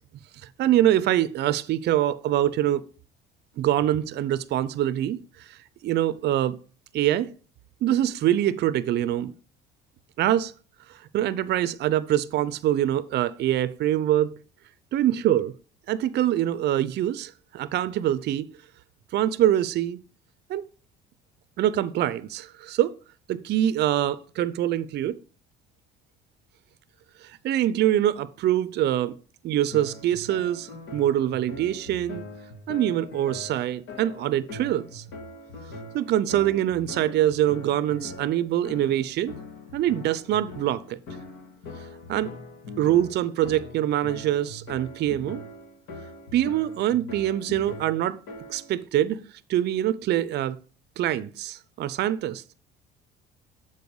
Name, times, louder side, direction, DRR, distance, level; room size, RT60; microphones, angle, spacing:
voice 1, 0.6-2.9 3.6-5.2 5.8-6.6 6.9-7.3 7.8-9.3 10.2-10.5 11.1-14.4 14.9-15.5 15.9-18.5 19.1-20.0 20.5-20.6 21.6-22.9 23.3-25.2 27.4-29.2 29.4-32.2 32.7-35.0 35.9-39.3 39.7-41.0 42.1-42.3 42.8-45.4 46.3-48.2 48.5-49.2 49.5-50.6 51.0-52.4, right 12 dB, 55° right, 0.5 m, -24 dB
sound 1, 29.7-48.8, left 2 dB, 65° left, 2.2 m, -42 dB
7.0 x 4.4 x 4.7 m
supercardioid pair, 95°, 21 cm